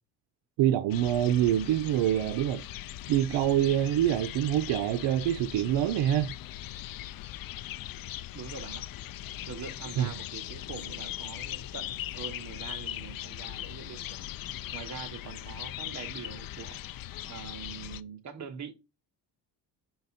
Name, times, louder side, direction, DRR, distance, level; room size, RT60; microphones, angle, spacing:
voice 1, 0.6-2.6 3.1-6.3 10.0-10.1, right 11 dB, 85° right, 0.6 m, -25 dB
sound 1, 0.9-18.0, left 13 dB, 55° left, 0.5 m, -40 dB
voice 2, 8.3-8.8 9.5-14.1 14.7-16.8 17.2-18.7, right 6 dB, 40° right, 1.2 m, -43 dB
5.8 x 3.9 x 4.1 m
cardioid pair, 120°, 43 cm